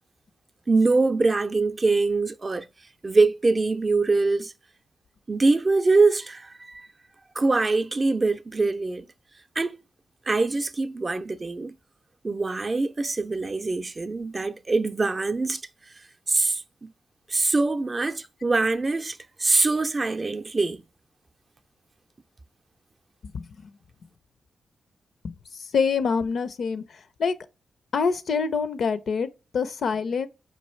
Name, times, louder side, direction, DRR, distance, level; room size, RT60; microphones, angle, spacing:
voice 1, 0.7-2.7 3.0-4.5 5.3-6.9 7.4-9.1 9.6-9.8 10.3-11.8 12.2-15.6 16.3-16.9 17.3-20.8, right 3 dB, 35° right, 0.4 m, -23 dB
voice 2, 25.7-26.8 27.2-27.3 27.9-30.3, left 5 dB, 70° left, 0.4 m, -25 dB
4.5 x 2.4 x 3.1 m
supercardioid pair, 45°, 0 cm